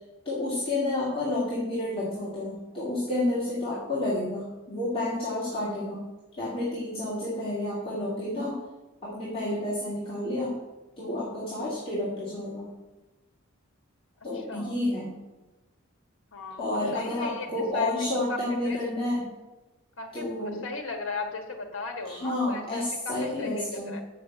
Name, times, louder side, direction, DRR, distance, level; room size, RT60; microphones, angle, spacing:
voice 1, 0.2-6.0 6.4-8.5 9.0-10.6 11.0-12.7 14.2-15.2 16.6-19.3 20.1-20.6 22.0-23.9, left 1 dB, 25° left, -9 dB, 2.7 m, -30 dB
voice 2, 14.3-14.8 16.3-16.7 16.9-17.9 18.3-18.4 18.6-18.8 20.0-24.0, left 3 dB, 60° left, 3 dB, 1.6 m, -37 dB
7.4 x 6.9 x 7.6 m, 1.1 s
head